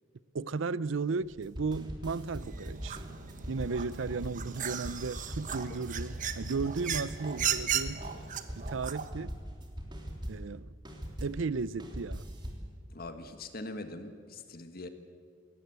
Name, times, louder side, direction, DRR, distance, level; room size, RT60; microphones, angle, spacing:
voice 1, 0.3-3.0 3.5-8.0 8.5-9.4 10.3-10.7 11.2-12.2, right 4 dB, 70° right, 0.5 m, -35 dB
sound 1, 1.2-11.4 11.8-12.7, equal, 20° right, 3.2 m, -41 dB
sound 2, 2.4-9.1, right 8 dB, 40° right, 1.2 m, -36 dB
voice 2, 12.9-14.9, left 2 dB, 50° left, 1.7 m, -42 dB
21.0 x 18.0 x 8.2 m
head